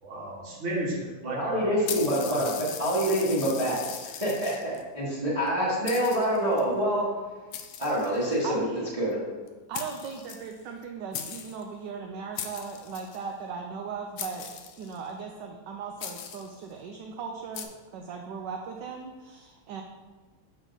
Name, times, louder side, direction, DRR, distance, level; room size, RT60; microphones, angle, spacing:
voice 1, 0.0-1.6 2.2-2.4, right 1 dB, 40° right, -2 dB, 1.4 m, -33 dB
voice 2, 1.2-2.5 2.8-7.1 7.8-8.6 9.0-9.2, equal, 20° right, -7 dB, 1.1 m, -26 dB
sound 1, 1.9-4.8 5.5-5.6 5.9-6.6 7.5-8.5 9.5-9.6 9.7-10.8 11.1-11.6 12.4-13.2 14.2-15.1 16.0-16.6 17.5-17.7, left 8 dB, 75° left, 1.1 m, -39 dB
voice 3, 8.4-8.9 9.7-19.8, right 5 dB, 75° right, 2 dB, 1.1 m, -38 dB
6.7 x 4.5 x 3.9 m, 1.3 s
omnidirectional pair, 2.2 m